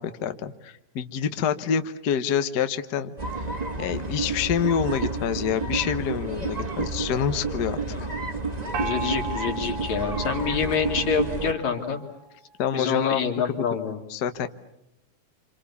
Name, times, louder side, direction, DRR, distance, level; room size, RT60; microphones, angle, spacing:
voice 1, 0.0-3.5 3.8-7.8 12.6-13.5 14.1-14.5, left 8 dB, 80° left, 10 dB, 0.9 m, -27 dB
sound 1, 3.2-11.5, right 3 dB, 20° right, 1.1 m, -30 dB
Gong, 8.7-12.3, right 3 dB, 75° right, 2.7 m, -36 dB
voice 2, 8.8-12.0 12.7-14.0, left 6 dB, 65° left, 3 dB, 3.8 m, -27 dB
28.0 x 27.0 x 7.0 m, 0.83 s
omnidirectional pair, 3.5 m